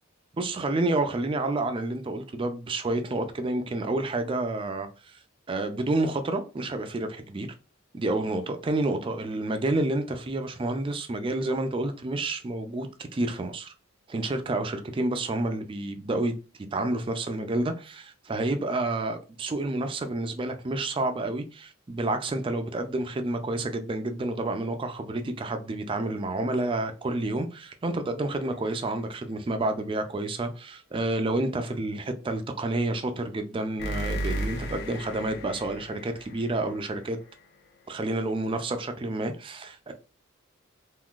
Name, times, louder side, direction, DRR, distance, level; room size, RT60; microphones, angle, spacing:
voice 1, 0.4-5.2 5.5-7.5 7.9-12.9 13.1-13.7 14.1-16.3 16.7-37.2 37.9-39.9, right 2 dB, 25° right, 0.4 m, -29 dB
sound 1, 28.3-29.0 33.8-37.4, equal, 50° left, 0.7 m, -36 dB
3.6 x 2.6 x 2.3 m
head